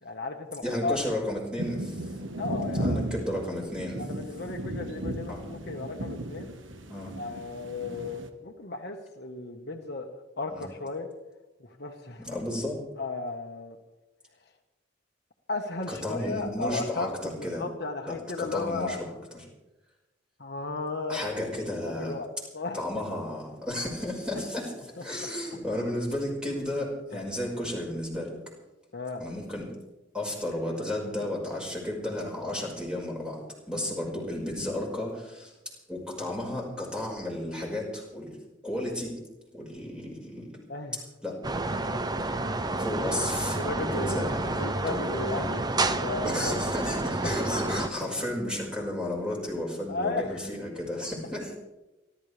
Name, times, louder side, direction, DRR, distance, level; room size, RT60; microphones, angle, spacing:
voice 1, 0.0-1.0 2.4-3.0 4.0-6.5 7.2-10.1 10.4-11.1 11.6-12.4 13.0-13.8 15.5-19.1 20.4-21.3 21.8-22.3 22.5-22.8 25.0-25.3 28.9-29.2 40.7-41.0 41.7-42.2 43.5-44.2 44.6-46.6 47.2-47.3 49.9-50.5, left 3 dB, 55° left, 3 dB, 1.5 m, -35 dB
voice 2, 0.6-2.0 2.8-4.0 5.3-5.5 6.9-7.2 10.5-10.7 12.2-12.8 15.9-17.6 18.1-19.1 19.3-19.5 21.1-22.2 22.7-28.3 29.2-29.7 30.1-33.4 33.7-35.5 35.9-38.4 38.6-39.2 39.5-40.5 41.2-41.4 42.8-45.0 46.2-51.5, left 1 dB, 5° right, -2 dB, 5.4 m, -33 dB
sound 1, 1.6-8.3, right 1 dB, 80° right, 1.5 m, -35 dB
sound 2, 41.4-47.9, right 2 dB, 20° right, 0.8 m, -29 dB
29.5 x 13.0 x 3.4 m, 1.0 s
head